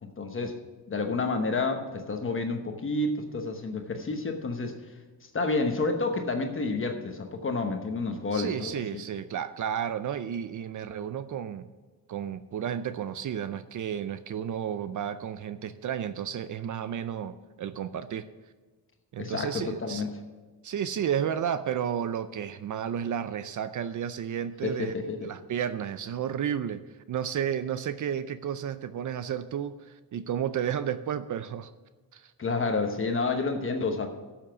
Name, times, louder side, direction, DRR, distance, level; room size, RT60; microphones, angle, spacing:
voice 1, 0.0-0.5 0.9-4.7 5.2-8.7 19.2-20.1 24.6-25.3 32.4-34.1, left 3 dB, 35° left, 4 dB, 1.0 m, -29 dB
voice 2, 8.3-11.7 12.1-18.3 19.1-20.0 20.6-24.9 25.2-31.7 32.1-32.3, right 9 dB, 55° right, 12 dB, 0.5 m, -32 dB
12.5 x 7.2 x 6.0 m, 1.4 s
wide cardioid pair, 155°, 35 cm